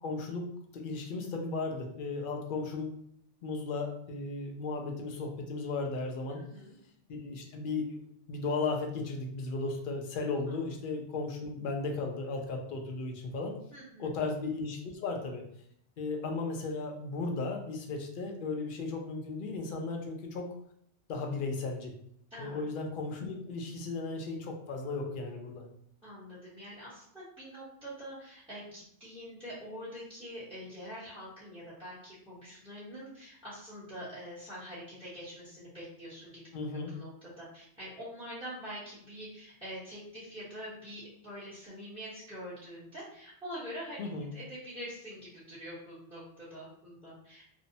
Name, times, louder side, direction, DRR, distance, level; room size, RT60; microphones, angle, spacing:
voice 1, 0.0-0.5 0.8-2.9 3.4-6.4 7.2-8.0 8.3-13.5 14.0-15.4 16.0-20.5 21.1-21.9 22.4-25.6 36.5-36.9 44.0-44.3, left 3 dB, 60° left, 2 dB, 0.6 m, -35 dB
voice 2, 6.3-6.8 10.5-10.6 13.7-14.1 22.3-22.6 26.0-36.4 36.9-44.0 44.3-47.4, equal, 5° right, -11 dB, 0.8 m, -45 dB
2.6 x 2.0 x 2.6 m, 0.71 s
omnidirectional pair, 1.2 m